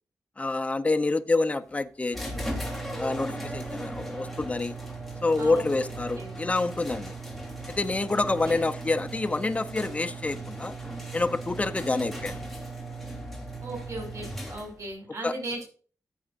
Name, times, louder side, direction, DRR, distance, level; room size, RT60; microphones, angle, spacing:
voice 1, 0.4-2.5 3.0-4.7 5.2-7.1 7.8-10.7 11.1-12.4 15.2-15.3, left 3 dB, 20° left, 0.8 m, -27 dB
sound 1, 2.1-14.9, right 2 dB, ahead, 3.5 m, -37 dB
voice 2, 8.1-8.5 11.7-12.1 13.6-15.6, right 1 dB, 55° right, 5.5 m, -37 dB
15.0 x 7.9 x 2.6 m
wide cardioid pair, 130°, 6 cm